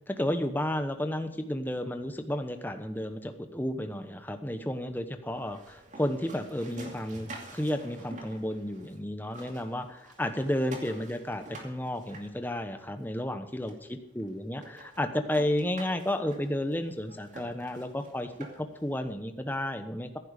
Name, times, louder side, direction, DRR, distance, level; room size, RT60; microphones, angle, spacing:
voice 1, 0.1-20.2, left 1 dB, 10° left, 8 dB, 1.0 m, -32 dB
sound 1, 5.3-9.0 9.2-13.0 13.7-13.8 14.2-14.3 14.6-18.8, right 1 dB, 40° right, 2.5 m, -48 dB
15.5 x 10.5 x 5.2 m, 0.94 s
head